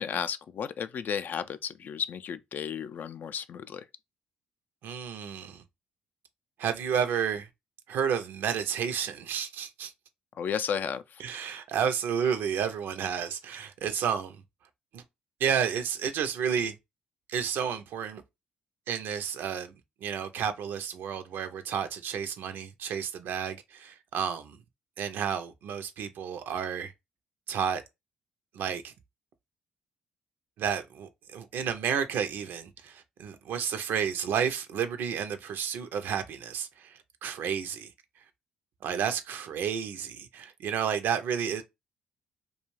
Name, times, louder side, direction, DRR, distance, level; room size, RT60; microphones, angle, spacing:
voice 1, 0.0-3.8 10.4-11.2, left 7 dB, 55° left, 0.3 m, -33 dB
voice 2, 4.8-5.6 6.6-7.5 7.9-9.9 11.2-14.4 14.9-15.0 15.4-16.7 17.3-18.2 18.9-24.6 25.0-26.9 27.5-27.8 28.5-28.9 30.6-37.9 38.8-41.6, right 7 dB, 70° right, 0.5 m, -31 dB
2.4 x 2.2 x 3.1 m
supercardioid pair, 65°, 4 cm